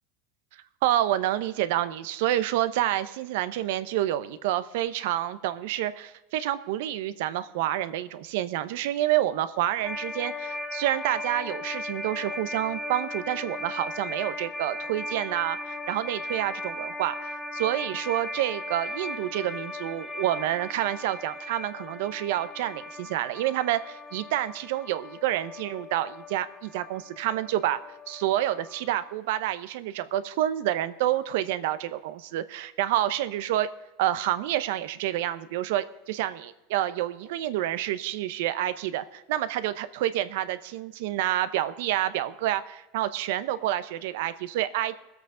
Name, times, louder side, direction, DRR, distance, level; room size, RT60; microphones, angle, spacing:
voice 1, 0.8-27.8 28.1-33.7 34.0-45.0, right 13 dB, 65° right, 14 dB, 0.7 m, -28 dB
sound 1, 9.8-29.1, left 2 dB, 5° left, 0.7 m, -38 dB
21.0 x 8.2 x 3.8 m, 1.0 s
supercardioid pair, 175°, 0 cm